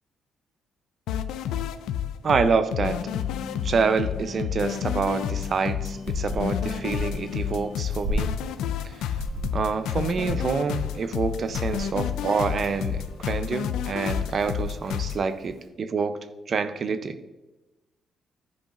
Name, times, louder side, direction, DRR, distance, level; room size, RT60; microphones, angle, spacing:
sound 1, 1.1-15.2, left 10 dB, 85° left, 0.3 m, -30 dB
voice 1, 2.2-3.0 3.6-8.3 8.8-9.1 9.5-16.2 16.5-17.2, right 5 dB, 50° right, 11 dB, 0.5 m, -27 dB
sound 2, 3.0-15.2, left 4 dB, 35° left, 0.6 m, -43 dB
sound 3, 5.9-15.7, right 1 dB, 70° right, 1.2 m, -36 dB
11.5 x 5.1 x 2.5 m, 1.1 s
cardioid pair, 90°, 0 cm